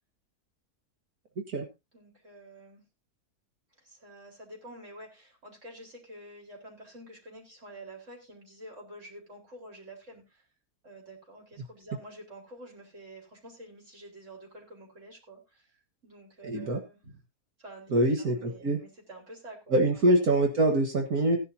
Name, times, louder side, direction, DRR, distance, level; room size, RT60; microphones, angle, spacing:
voice 1, 1.9-2.8 3.8-10.4 10.8-17.2 17.6-19.8, right 1 dB, 50° right, 0 dB, 4.9 m, -48 dB
voice 2, 16.4-16.8 17.9-18.8 19.7-21.4, right 1 dB, 70° right, 3 dB, 2.1 m, -24 dB
16.0 x 11.0 x 2.8 m, 0.25 s
omnidirectional pair, 1.6 m